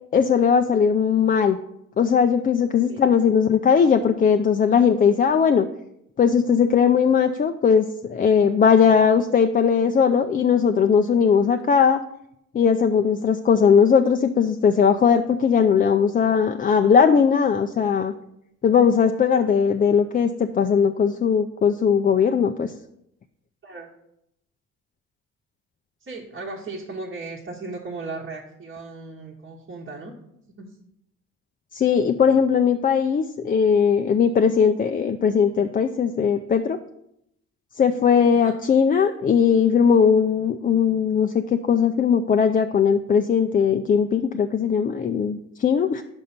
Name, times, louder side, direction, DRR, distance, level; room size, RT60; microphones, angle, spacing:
voice 1, 0.1-1.6 2.0-5.7 6.2-12.0 12.5-18.1 18.6-22.7 31.7-36.8 37.8-46.0, left 6 dB, 30° left, 6 dB, 0.3 m, -19 dB
voice 2, 26.0-30.1 30.6-30.7 38.3-38.6, right 3 dB, 35° right, -3 dB, 1.0 m, -36 dB
5.3 x 5.3 x 5.7 m, 0.79 s
cardioid pair, 90°, 30 cm